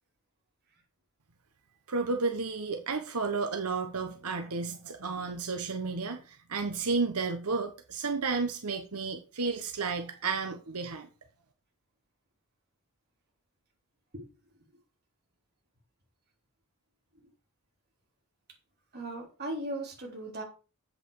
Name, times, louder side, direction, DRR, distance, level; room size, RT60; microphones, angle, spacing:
voice 1, 1.9-11.1, right 4 dB, 90° right, 5 dB, 1.1 m, -32 dB
voice 2, 18.9-20.4, right 1 dB, 45° right, 0 dB, 3.3 m, -37 dB
8.1 x 7.9 x 4.8 m, 0.34 s
head